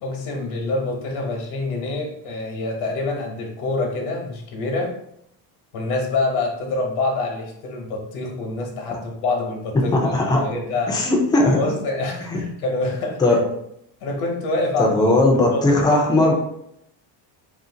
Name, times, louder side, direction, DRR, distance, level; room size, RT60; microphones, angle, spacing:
voice 1, 0.0-5.0 5.7-9.9 10.3-11.1 11.4-13.2 14.0-15.0 15.3-16.3, left 2 dB, 80° left, 0 dB, 1.0 m, -26 dB
voice 2, 9.9-10.4 10.9-11.6 12.3-12.4 13.2-13.4 14.8-16.3, left 2 dB, 10° left, 0 dB, 0.3 m, -18 dB
2.6 x 2.4 x 3.7 m, 0.76 s
cardioid pair, 135°, 49 cm